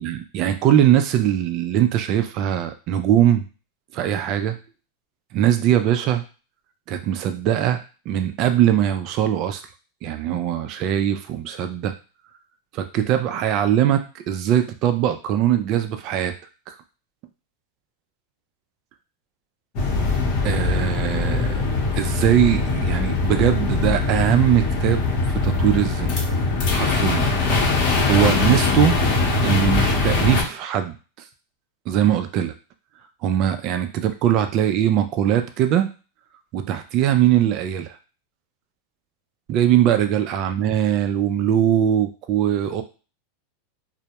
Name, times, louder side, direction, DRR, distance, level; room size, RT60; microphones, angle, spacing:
voice 1, 0.0-3.4 3.9-4.6 5.3-6.2 6.9-7.8 8.1-9.6 10.0-11.9 12.7-16.3 16.7-16.8 20.4-21.6 22.0-26.1 26.7-27.3 27.8-29.0 29.4-30.9 31.9-32.5 33.2-35.9 36.5-38.0 39.5-42.8, right 10 dB, 45° right, 8 dB, 0.3 m, -21 dB
sound 1, 19.8-30.4, left 3 dB, 50° left, 0.8 m, -21 dB
2.1 x 2.0 x 2.8 m, 0.34 s
supercardioid pair, 125°, 0 cm